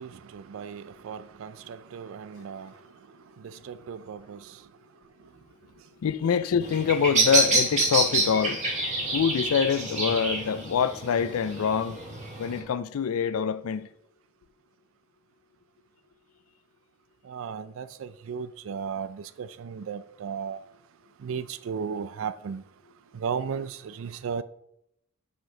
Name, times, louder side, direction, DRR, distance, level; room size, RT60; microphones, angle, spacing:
voice 1, 0.0-2.7 3.6-4.4 17.3-20.6 21.2-22.6 23.2-24.4, right 6 dB, 65° right, 0.4 m, -35 dB
voice 2, 6.0-8.6 9.1-12.0 12.4-13.9, left 7 dB, 80° left, 0.4 m, -25 dB
Bird vocalization bird call bird song, 6.6-12.6, right 2 dB, 35° right, 2.1 m, -27 dB
6.3 x 5.1 x 5.8 m
head